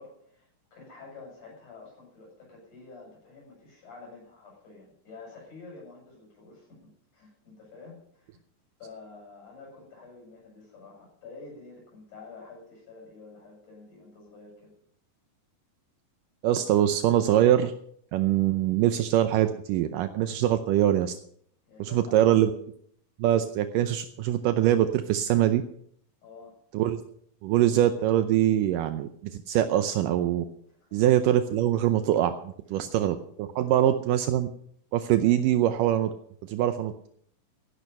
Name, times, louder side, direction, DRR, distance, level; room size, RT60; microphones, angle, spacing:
voice 1, 0.0-8.4 8.8-14.7 21.7-22.3 26.2-26.6 30.9-31.0 32.8-32.9, left 3 dB, 60° left, -2 dB, 8.9 m, -48 dB
voice 2, 16.4-17.7 18.1-21.1 21.8-22.5 23.2-25.6 26.7-27.0 27.4-30.5 30.9-34.5 34.9-36.1 36.4-36.9, right 12 dB, 80° right, 9 dB, 2.3 m, -23 dB
15.5 x 11.5 x 5.5 m, 0.64 s
omnidirectional pair, 4.0 m